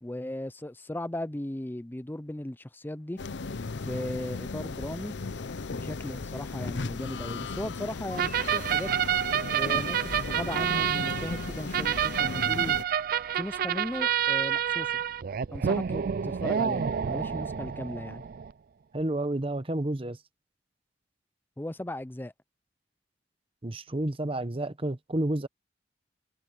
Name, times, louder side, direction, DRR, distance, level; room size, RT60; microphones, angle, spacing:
voice 1, 0.0-3.2 3.8-5.2 5.7-8.9 9.5-12.8 13.3-15.0 15.5-18.2 21.6-22.3, left 1 dB, 10° left, 0.5 m, -37 dB
sound 1, 3.2-12.8, left 3 dB, 75° left, 0.7 m, -36 dB
sound 2, 8.1-13.1 13.4-14.1, left 7 dB, 50° left, 3.1 m, -54 dB
sound 3, 8.2-18.5, right 9 dB, 50° right, 0.4 m, -28 dB
voice 2, 18.9-20.2 23.6-25.5, right 1 dB, 30° right, 1.0 m, -30 dB
head